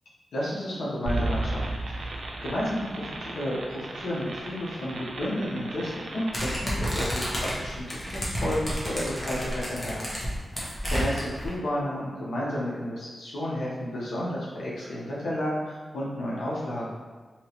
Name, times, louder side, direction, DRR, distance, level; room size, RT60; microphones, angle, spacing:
voice 1, 0.3-10.2 10.8-16.9, equal, 90° left, -7 dB, 0.8 m, -32 dB
sound 1, 1.1-6.6, right 2 dB, 80° right, 0.4 m, -34 dB
sound 2, 6.3-11.5, equal, 20° left, 1.0 m, -30 dB
3.0 x 2.8 x 2.8 m, 1.4 s
cardioid pair, 75°, 0 cm